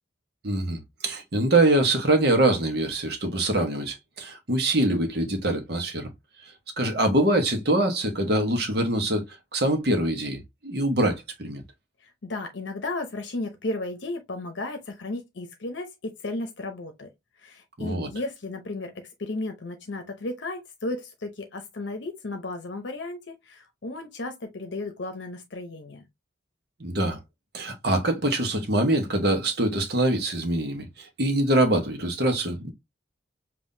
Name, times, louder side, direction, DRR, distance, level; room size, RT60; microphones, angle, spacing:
voice 1, 0.4-6.1 6.4-9.3 9.5-11.6 17.8-18.1 26.8-27.2 27.5-32.7, right 1 dB, 55° right, 1.1 m, -24 dB
voice 2, 12.0-17.1 17.4-26.1, left 2 dB, 70° left, 0.7 m, -34 dB
5.5 x 2.7 x 2.6 m
head